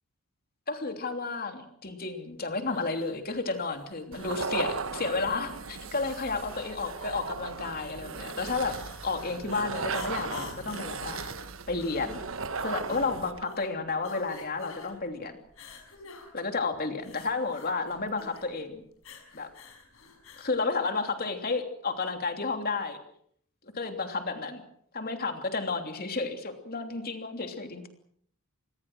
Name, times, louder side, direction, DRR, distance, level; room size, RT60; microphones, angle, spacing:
voice 1, 0.7-8.8 9.0-11.2 11.7-12.2 12.6-15.3 16.3-18.8 19.3-19.5 20.4-23.0 23.6-24.6 24.9-27.9, left 3 dB, 45° left, 6 dB, 3.1 m, -32 dB
sound 1, 2.6-20.6, left 4 dB, 70° left, 5.6 m, -48 dB
sound 2, 4.1-13.4, right 4 dB, 65° right, 1.3 m, -37 dB
27.0 x 21.0 x 6.2 m, 0.64 s
head